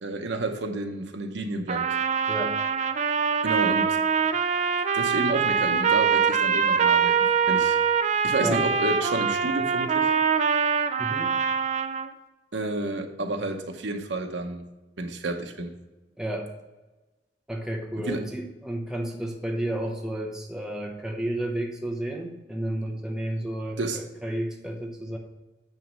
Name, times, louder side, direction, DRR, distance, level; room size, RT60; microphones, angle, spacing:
voice 1, 0.0-1.9 3.4-4.0 4.9-7.1 7.5-7.8 8.2-10.1 12.5-14.6 15.0-15.7 18.0-18.2 23.8-24.0, right 2 dB, 80° right, 0.9 m, -30 dB
Trumpet, 1.7-12.1, right 6 dB, 40° right, 0.4 m, -24 dB
voice 2, 2.3-2.6 8.4-8.7 11.0-11.4 16.2-16.5 17.5-25.2, right 1 dB, 5° right, 0.7 m, -31 dB
9.1 x 3.1 x 5.1 m
head